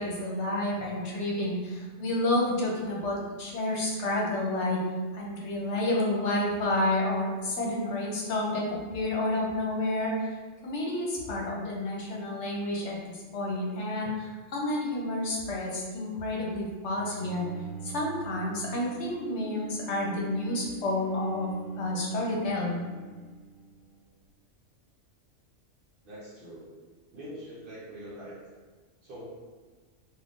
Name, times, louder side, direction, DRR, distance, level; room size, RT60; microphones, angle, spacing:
voice 1, 0.0-4.8 5.1-10.3 10.6-17.5 17.8-21.5 21.8-22.8, left 1 dB, 70° left, -3 dB, 1.0 m, -30 dB
Bowed string instrument, 16.9-24.2, right 6 dB, 45° left, 0.7 m, -46 dB
voice 2, 26.0-26.7 27.1-28.4 29.0-29.2, equal, 55° right, -5 dB, 0.7 m, -43 dB
2.6 x 2.4 x 3.5 m, 1.3 s
omnidirectional pair, 1.3 m